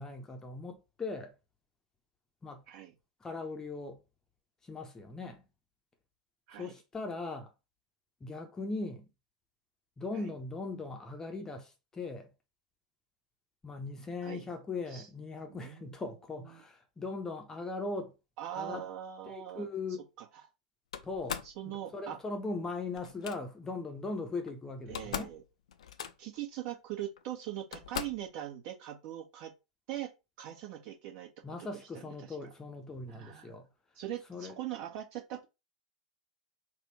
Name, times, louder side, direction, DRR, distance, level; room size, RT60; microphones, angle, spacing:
voice 1, 0.0-1.3 2.4-2.6 3.2-4.0 4.6-5.4 6.5-7.5 8.2-9.1 10.0-12.3 13.6-18.1 18.6-18.8 19.3-20.0 21.0-25.3 31.4-33.7 34.3-34.5, left 3 dB, 15° left, 0.8 m, -39 dB
voice 2, 15.5-15.9 16.5-16.6 18.4-19.7 20.2-20.4 21.4-22.2 24.9-25.4 26.2-29.5 29.9-30.1 30.4-31.3 31.6-31.7 31.9-32.4 33.1-33.6 33.9-35.4, right 12 dB, 45° right, 1.4 m, -41 dB
Slam, 20.9-21.6 23.0-23.4 24.5-24.6 24.8-25.4 25.7-26.4 27.2-27.3 27.7-28.3, left 8 dB, 65° left, 0.5 m, -40 dB
4.2 x 2.5 x 4.5 m
figure-of-eight pair, 90°, 4 cm